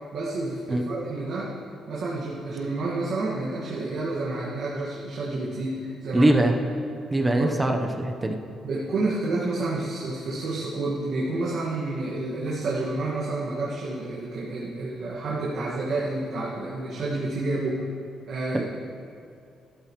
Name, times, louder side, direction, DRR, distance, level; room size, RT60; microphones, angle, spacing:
voice 1, 0.0-1.5 1.9-6.3 7.4-7.6 8.6-17.8 18.3-18.6, right 2 dB, 65° right, -7 dB, 1.8 m, -29 dB
voice 2, 6.1-6.5 7.1-8.4 18.5-18.6, right 1 dB, 15° right, 3 dB, 0.9 m, -22 dB
13.0 x 12.0 x 3.2 m, 2.4 s
cardioid pair, 90°, 0 cm